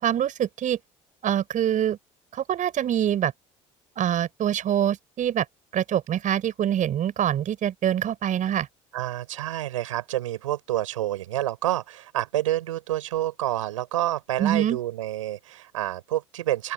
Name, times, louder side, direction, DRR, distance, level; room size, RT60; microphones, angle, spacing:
voice 1, 0.0-0.8 1.2-2.0 2.3-3.3 4.0-5.5 5.7-8.7 14.4-14.8, right 10 dB, 50° right, 6.9 m, -25 dB
voice 2, 8.9-16.7, right 14 dB, 90° right, 7.5 m, -28 dB
open air
hypercardioid pair, 65°, 16 cm